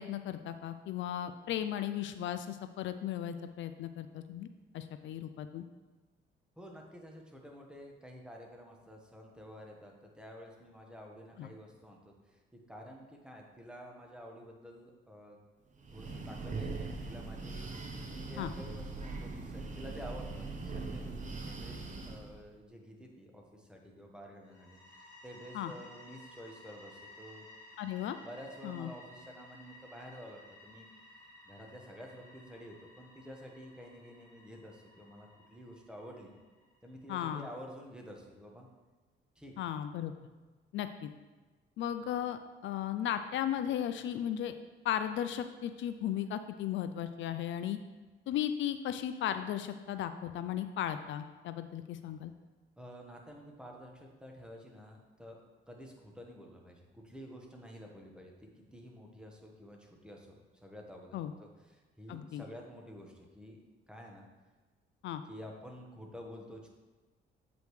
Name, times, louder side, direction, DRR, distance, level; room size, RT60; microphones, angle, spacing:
voice 1, 0.0-4.5 4.7-5.6 11.4-11.5 18.4-18.5 25.5-25.7 27.8-28.2 28.6-28.9 37.1-37.5 39.6-40.1 40.7-41.1 41.8-44.5 44.8-47.8 48.3-52.3 61.1-61.3 62.1-62.4 65.0-65.2, left 10 dB, 70° left, 9 dB, 0.4 m, -36 dB
voice 2, 6.6-15.4 15.9-17.7 18.0-27.5 28.2-30.8 31.2-36.3 36.8-38.7 39.4-39.6 52.8-55.4 55.7-63.6 63.9-64.3 65.3-66.7, equal, 5° right, 0 dB, 1.2 m, -50 dB
Breathing, 15.7-22.4, right 3 dB, 40° right, 0.8 m, -41 dB
sound 1, 24.4-37.1, left 1 dB, 15° left, 2.1 m, -56 dB
7.7 x 5.1 x 3.2 m, 1.3 s
cardioid pair, 90°, 20 cm